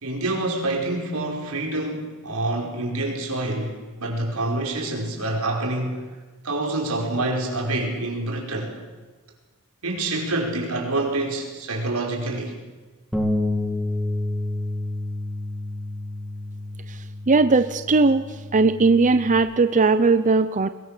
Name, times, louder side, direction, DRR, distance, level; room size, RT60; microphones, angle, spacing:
voice 1, 0.0-6.1 6.4-8.8 9.8-12.5, right 2 dB, 90° right, 0 dB, 5.1 m, -27 dB
Bass guitar, 13.1-19.4, left 2 dB, ahead, 2.6 m, -29 dB
voice 2, 17.3-18.2 18.5-20.7, right 3 dB, 35° right, 11 dB, 0.6 m, -18 dB
22.0 x 21.0 x 6.7 m, 1.3 s
head